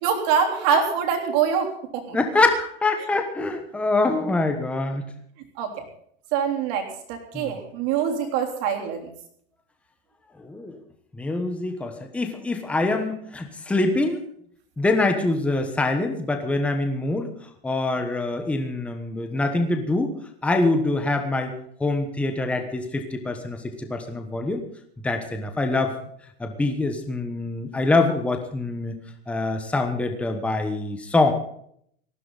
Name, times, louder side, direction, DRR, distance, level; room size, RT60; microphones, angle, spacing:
voice 1, 0.0-2.2 5.6-5.8 6.3-9.1, right 7 dB, 40° right, 3 dB, 3.5 m, -24 dB
voice 2, 2.1-5.0 7.3-7.5 10.4-10.8 11.1-14.2 14.8-17.3 17.6-20.1 20.4-21.5 21.8-24.6 25.0-25.9 26.4-28.9 29.3-31.3, left 2 dB, 5° left, 6 dB, 1.2 m, -24 dB
19.5 x 15.0 x 4.1 m, 0.65 s
supercardioid pair, 175°, 32 cm